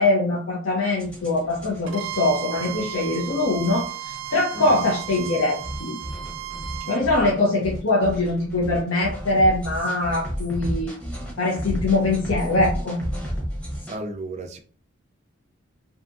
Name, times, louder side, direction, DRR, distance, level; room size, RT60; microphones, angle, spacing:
voice 1, 0.0-6.0 6.9-10.9 11.4-13.0, left 2 dB, 85° left, 0.6 m, -22 dB
sound 1, 1.0-14.0, equal, 5° left, 0.6 m, -33 dB
Bowed string instrument, 1.9-7.0, right 13 dB, 80° right, 0.5 m, -35 dB
voice 2, 13.9-14.6, right 2 dB, 35° right, 0.3 m, -33 dB
2.6 x 2.6 x 2.3 m
head